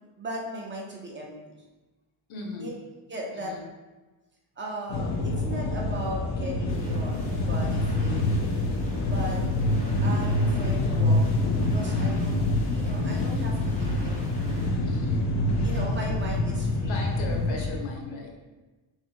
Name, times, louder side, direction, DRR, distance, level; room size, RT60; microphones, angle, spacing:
voice 1, 0.0-1.6 2.6-2.7 3.1-3.5 4.6-8.2 9.1-9.4 10.0-11.2 11.7-12.4 12.7-14.7 15.6-17.0, right 1 dB, 25° right, -2 dB, 0.6 m, -37 dB
voice 2, 2.3-2.7 3.3-3.7 14.8-15.2 16.9-18.3, left 3 dB, 75° left, -1 dB, 1.0 m, -37 dB
sound 1, 4.9-17.8, left 1 dB, 40° left, 0.4 m, -26 dB
sound 2, 6.7-14.7, left 1 dB, 15° left, 1.1 m, -46 dB
5.8 x 2.7 x 2.2 m, 1.2 s
cardioid pair, 125°, 47 cm